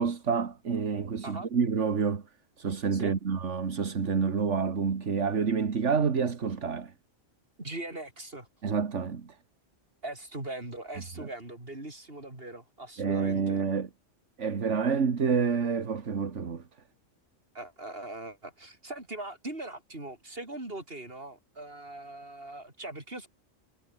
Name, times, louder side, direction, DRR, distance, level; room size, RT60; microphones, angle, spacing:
voice 1, 0.0-2.2 2.6-6.9 8.6-9.2 13.0-13.9 14.4-16.6, right 6 dB, 75° right, 1.9 m, -28 dB
voice 2, 7.6-8.5 10.0-13.6 17.5-23.3, right 2 dB, 50° right, 5.5 m, -40 dB
omnidirectional pair, 1.3 m